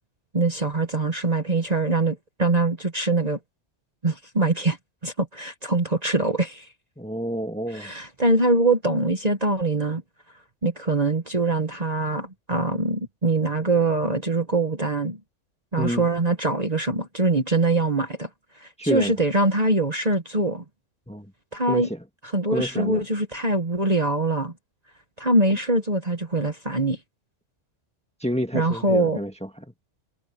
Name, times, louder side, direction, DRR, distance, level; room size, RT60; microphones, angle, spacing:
voice 1, 0.3-3.4 4.0-4.8 5.0-6.7 7.7-10.0 10.6-15.2 15.7-18.3 18.6-20.6 21.5-21.9 22.3-24.5 25.2-27.0 28.5-29.2, right 2 dB, 30° right, 1.5 m, -23 dB
voice 2, 7.0-7.9 15.8-16.1 18.8-19.1 21.1-21.3 21.7-22.0 22.5-23.0 28.2-29.6, equal, 5° left, 1.6 m, -28 dB
omnidirectional pair, 1.3 m